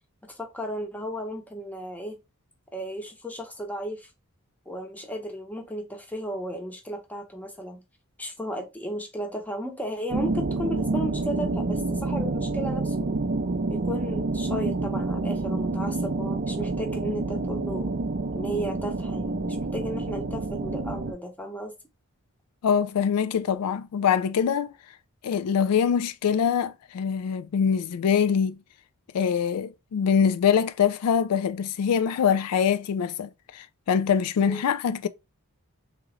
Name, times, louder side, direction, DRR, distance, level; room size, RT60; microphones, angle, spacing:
voice 1, 0.3-2.2 2.7-4.1 4.7-7.8 8.2-13.1 13.7-17.9 18.3-21.7 34.4-34.6, equal, 5° left, 0.8 m, -34 dB
sound 1, 10.1-21.1, right 3 dB, 45° right, 0.5 m, -28 dB
voice 2, 22.6-24.7 25.2-28.6 29.1-35.1, left 7 dB, 85° left, 0.4 m, -24 dB
3.6 x 2.9 x 3.1 m
head